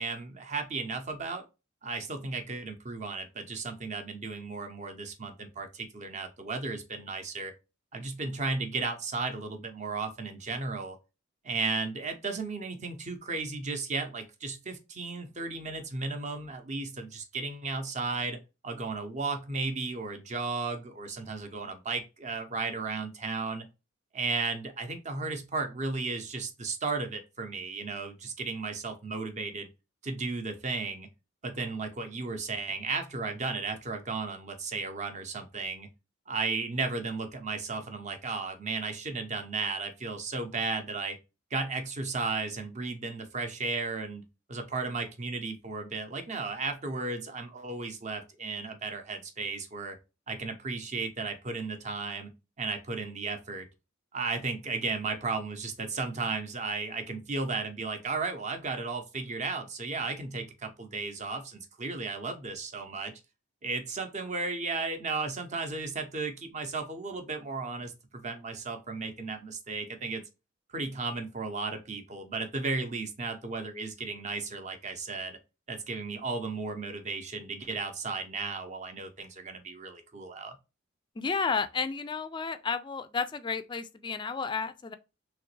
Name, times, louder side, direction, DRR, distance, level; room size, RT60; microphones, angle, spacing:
voice 1, 0.0-1.4 1.8-7.5 7.9-11.0 11.4-18.4 18.6-23.6 24.1-29.7 30.0-31.1 31.4-35.9 36.3-41.2 41.5-44.2 44.5-50.0 50.3-52.3 52.6-53.7 54.1-63.1 63.6-70.2 70.7-75.4 75.7-80.5, right 4 dB, 35° right, 0.7 m, -34 dB
voice 2, 81.2-84.9, left 5 dB, 25° left, 0.3 m, -32 dB
3.3 x 2.9 x 3.1 m
head